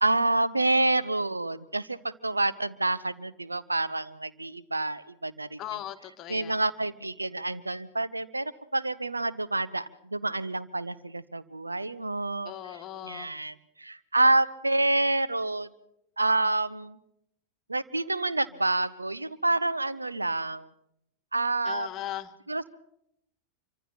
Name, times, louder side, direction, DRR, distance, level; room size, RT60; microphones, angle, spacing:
voice 1, 0.0-5.6 6.3-15.7 16.2-17.0 17.7-20.7 21.3-21.9 22.5-22.7, right 2 dB, 80° right, 16 dB, 0.7 m, -28 dB
voice 2, 5.6-6.6 12.4-13.3 21.7-22.3, left 12 dB, 35° left, 10 dB, 1.2 m, -38 dB
26.0 x 24.5 x 4.3 m, 0.79 s
figure-of-eight pair, 90°, 0 cm